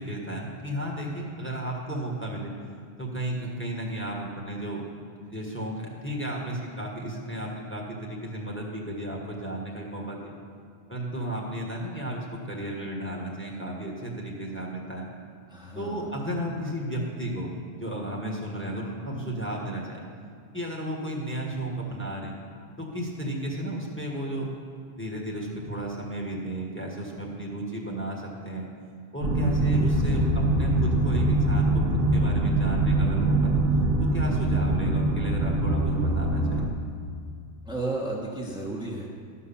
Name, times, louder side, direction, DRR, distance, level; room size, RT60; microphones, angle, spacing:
voice 1, 0.0-2.6 3.0-4.8 5.2-10.3 10.9-15.1 15.7-20.0 20.5-22.3 22.8-24.5 24.9-28.7 29.1-33.6 34.0-36.7, right 1 dB, 10° left, -2 dB, 1.5 m, -33 dB
voice 2, 15.5-16.1 37.6-39.1, right 2 dB, 5° right, -5 dB, 1.2 m, -33 dB
sound 1, 29.2-36.7, right 2 dB, 55° right, 1.1 m, -23 dB
12.5 x 5.6 x 7.1 m, 2.2 s
omnidirectional pair, 1.1 m